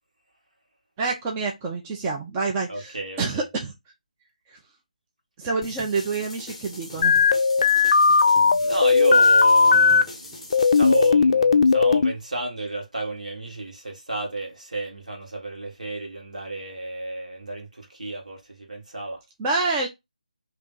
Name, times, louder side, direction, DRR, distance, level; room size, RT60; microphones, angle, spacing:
voice 1, 1.0-3.7 4.5-4.6 5.4-7.2 19.4-19.9, right 4 dB, 15° right, 0.5 m, -27 dB
voice 2, 2.7-3.4 8.6-19.2, right 2 dB, 65° right, 1.5 m, -31 dB
sound 1, 5.6-11.1, left 2 dB, 5° left, 1.0 m, -41 dB
sound 2, 7.0-10.0 10.5-12.1, left 5 dB, 45° left, 0.4 m, -17 dB
3.4 x 2.8 x 3.7 m
figure-of-eight pair, 155°, 4 cm